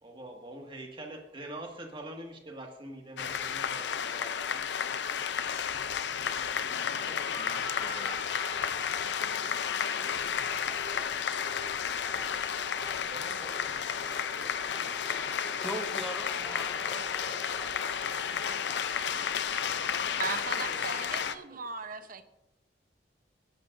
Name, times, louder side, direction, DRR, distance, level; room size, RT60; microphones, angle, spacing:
voice 1, 0.0-4.7 7.0-7.4 11.3-11.5 12.4-15.2 20.5-21.1 21.5-21.6, right 1 dB, 30° right, 2 dB, 1.9 m, -46 dB
sound 1, 3.2-21.3, left 7 dB, 80° left, 0.5 m, -32 dB
voice 2, 6.4-8.2 15.6-17.7, equal, ahead, 2 dB, 1.4 m, -43 dB
sound 2, 6.7-20.4, left 2 dB, 35° left, 4.9 m, -46 dB
voice 3, 20.2-22.2, right 4 dB, 55° right, 9 dB, 0.8 m, -37 dB
21.0 x 11.0 x 2.6 m, 0.90 s
head